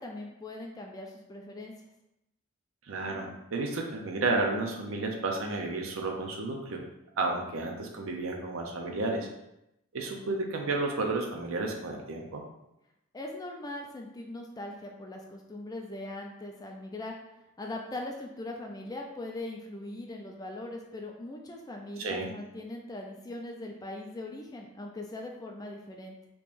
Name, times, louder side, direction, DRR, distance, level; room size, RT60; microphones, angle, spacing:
voice 1, 0.0-1.7 13.1-17.1 17.6-26.1, left 2 dB, 15° left, 1 dB, 0.3 m, -40 dB
voice 2, 2.8-6.8 7.2-9.3 9.9-12.4 22.0-22.3, right 3 dB, 65° right, 2 dB, 0.5 m, -32 dB
3.6 x 2.9 x 2.5 m, 0.86 s
head